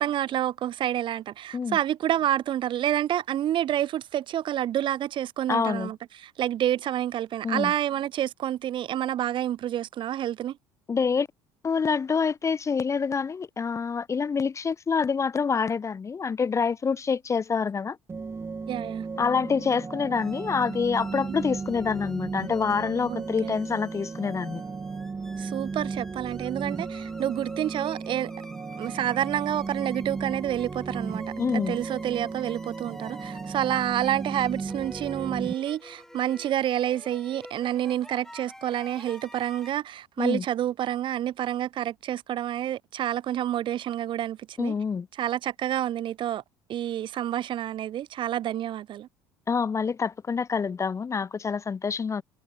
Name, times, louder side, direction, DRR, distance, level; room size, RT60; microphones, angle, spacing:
voice 1, 0.0-10.6 18.7-19.1 21.1-21.4 23.1-23.5 25.4-28.3 28.8-31.3 31.5-44.7 45.1-46.4 46.7-49.1, right 11 dB, 50° right, 0.9 m, -28 dB
voice 2, 5.5-5.9 7.4-7.7 10.9-11.3 11.6-18.0 19.2-24.6 31.4-31.8 40.2-40.4 44.6-45.1 49.5-52.2, left 5 dB, 30° left, 0.8 m, -26 dB
sound 1, 18.1-35.5, right 4 dB, 25° right, 2.9 m, -35 dB
sound 2, 20.1-39.7, left 1 dB, 5° left, 3.1 m, -50 dB
hypercardioid pair, 70°, 11 cm